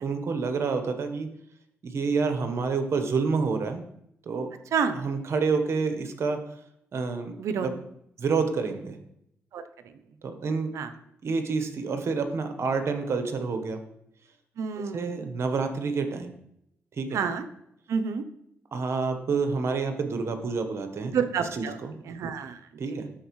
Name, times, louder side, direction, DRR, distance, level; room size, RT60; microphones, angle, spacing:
voice 1, 0.0-1.3 1.8-3.8 4.2-4.5 4.9-6.4 6.9-7.8 8.2-9.0 10.2-10.7 11.2-13.8 14.9-16.3 16.9-17.2 18.7-21.1 21.5-21.9 22.8-23.1, right 4 dB, 60° right, 7 dB, 1.1 m, -28 dB
voice 2, 7.4-7.7 9.5-10.0 10.7-10.9 14.6-15.3 17.1-17.4 17.9-18.2 21.1-21.8 22.0-22.6 22.9-23.1, right 6 dB, 80° right, 10 dB, 0.6 m, -29 dB
12.5 x 4.4 x 3.1 m, 0.75 s
cardioid pair, 60°, 5 cm